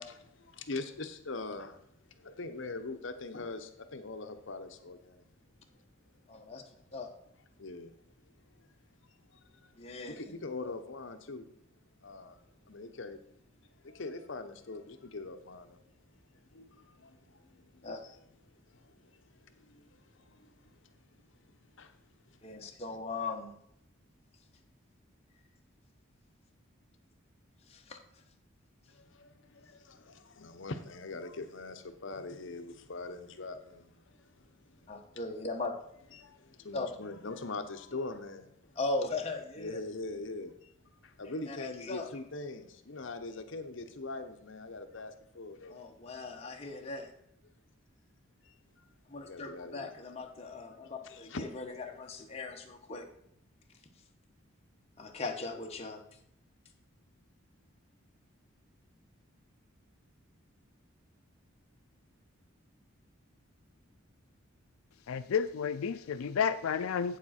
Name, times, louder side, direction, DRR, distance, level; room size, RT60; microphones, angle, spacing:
voice 1, 0.0-5.3 7.6-7.9 8.5-8.7 9.1-9.7 10.0-11.5 12.0-13.2 13.8-15.8 16.3-21.0 21.3-21.4 21.8-22.0 22.7-22.8 28.9-35.0 35.5-35.6 35.9-38.8 39.5-45.8 46.3-46.5 47.4-47.5 48.4-48.8 49.1-49.9 51.0-51.4, left 3 dB, 65° left, 0.8 m, -43 dB
voice 2, 6.3-6.6 6.9-7.1 9.8-10.3 17.8-18.0 22.4-23.5 27.7-28.0 34.9-35.7 36.7-36.9 38.8-39.8 41.5-42.1 45.7-47.1 49.1-53.1 55.0-56.0, left 3 dB, 30° left, 1.1 m, -38 dB
voice 3, 65.1-67.2, left 7 dB, 90° left, 0.4 m, -31 dB
8.8 x 7.3 x 4.3 m
head